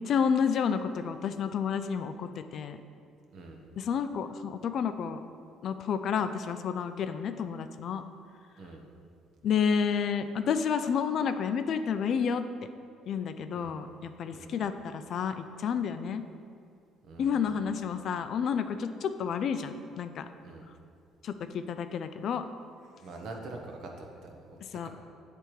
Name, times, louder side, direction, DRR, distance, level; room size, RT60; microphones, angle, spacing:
voice 1, 0.0-2.8 3.8-5.2 5.6-8.0 9.4-12.4 13.0-16.2 17.2-20.3 20.7-20.8 21.2-22.5 24.6-24.9, left 7 dB, 55° left, 9 dB, 0.3 m, -30 dB
voice 2, 17.0-17.5 20.4-20.6 23.0-24.6 24.8-24.9, right 2 dB, 60° right, 1 dB, 0.9 m, -44 dB
8.4 x 3.4 x 4.5 m, 2.3 s
cardioid pair, 100°, 0 cm